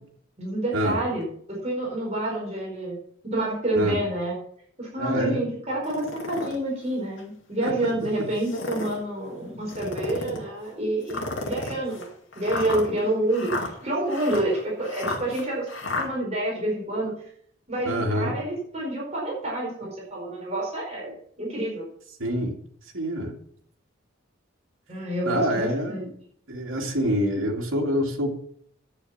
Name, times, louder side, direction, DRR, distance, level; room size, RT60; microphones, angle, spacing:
voice 1, 0.4-3.0 3.2-4.3 4.8-12.1 12.3-15.7 15.9-17.1 17.7-21.8 24.9-26.1, right 1 dB, 30° right, -3 dB, 4.9 m, -28 dB
voice 2, 5.0-5.4 7.6-7.7 17.8-18.4 22.2-22.6 22.9-23.4 25.2-26.1 26.5-28.4, equal, 80° right, 0 dB, 2.5 m, -26 dB
sound 1, 5.8-6.6 7.2-7.3 8.3-9.0 9.7-10.4 11.1-16.1, left 2 dB, 75° left, 2.4 m, -32 dB
10.0 x 8.7 x 7.3 m, 0.64 s
head